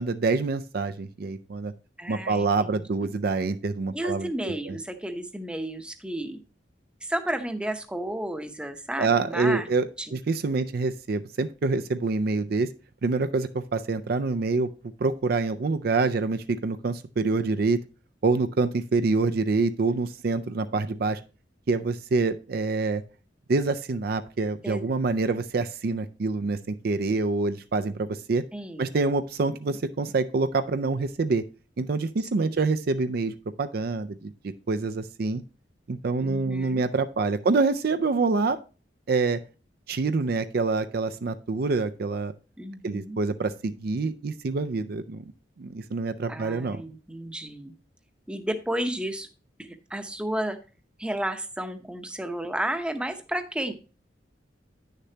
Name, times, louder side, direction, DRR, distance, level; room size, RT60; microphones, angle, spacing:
voice 1, 0.0-1.7 2.1-4.8 9.0-12.7 13.0-14.7 15.0-17.8 18.2-21.2 21.7-23.0 23.5-28.4 28.8-31.4 31.8-35.4 35.9-38.6 39.1-39.4 39.9-42.3 42.8-45.2 45.6-46.8, right 3 dB, 55° right, 9 dB, 0.4 m, -26 dB
voice 2, 2.0-3.1 3.9-6.4 7.0-9.7 10.0-10.2 24.6-24.9 28.5-28.9 32.4-32.6 36.2-36.9 42.6-43.2 46.3-47.7 48.3-49.3 49.6-50.6 51.0-53.7, right 1 dB, 5° right, 7 dB, 0.7 m, -32 dB
9.6 x 6.6 x 2.8 m, 0.34 s
head